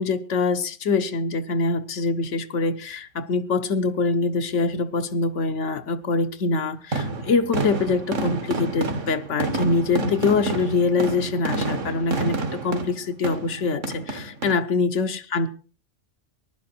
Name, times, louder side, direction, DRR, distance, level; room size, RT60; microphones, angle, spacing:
voice 1, 0.0-15.5, left 4 dB, 80° left, 1.3 m, -24 dB
sound 1, 6.9-14.5, right 2 dB, 90° right, 1.9 m, -28 dB
19.5 x 11.5 x 4.5 m
omnidirectional pair, 1.2 m